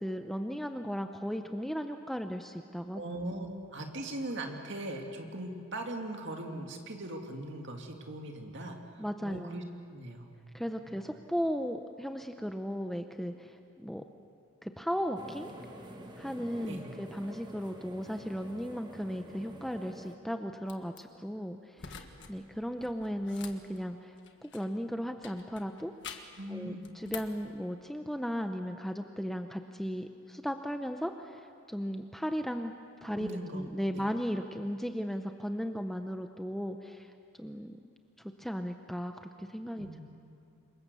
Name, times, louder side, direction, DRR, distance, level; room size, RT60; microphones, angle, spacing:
voice 1, 0.0-3.0 9.0-9.5 10.5-14.0 14.6-15.5 16.2-22.0 22.3-24.1 24.4-25.9 26.5-32.7 33.0-37.1 37.4-37.8 38.2-40.0, equal, ahead, 6 dB, 0.6 m, -36 dB
voice 2, 2.9-9.6 9.9-10.3 16.6-16.9 26.4-26.9 33.1-34.1 39.8-40.0, right 1 dB, 55° right, 3 dB, 2.4 m, -40 dB
sound 1, 15.2-20.2, right 1 dB, 20° right, 1.4 m, -48 dB
sound 2, 20.6-21.0 21.8-22.3 22.6-24.8 25.2-26.4 26.8-27.4, left 7 dB, 55° left, 1.5 m, -47 dB
27.5 x 23.0 x 6.9 m, 2.5 s
head